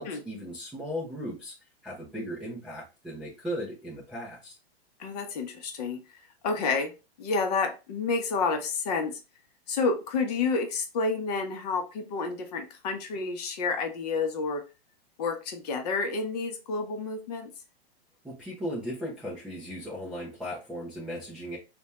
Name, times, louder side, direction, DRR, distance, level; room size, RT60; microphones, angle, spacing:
voice 1, 0.0-1.5 1.8-4.6 18.2-21.6, equal, 5° right, -8 dB, 0.4 m, -37 dB
voice 2, 5.0-6.0 6.4-6.9 7.2-9.2 9.7-14.6 15.2-17.5, left 4 dB, 40° left, 5 dB, 0.7 m, -29 dB
3.4 x 2.2 x 4.0 m, 0.30 s
hypercardioid pair, 160°, 32 cm